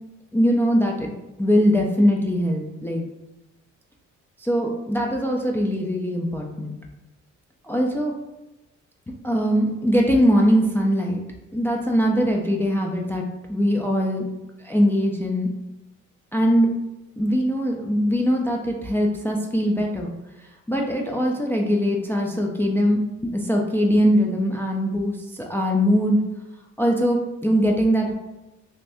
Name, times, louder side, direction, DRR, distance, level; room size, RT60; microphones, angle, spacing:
voice 1, 0.3-1.1 1.4-3.0 4.4-6.7 7.6-8.1 9.2-11.2 11.5-13.2 13.5-14.3 14.6-15.5 16.3-16.7 17.2-20.1 20.7-26.2 26.8-28.1, equal, 10° left, 0 dB, 0.3 m, -21 dB
2.6 x 2.5 x 3.3 m, 0.98 s
cardioid pair, 90°, 30 cm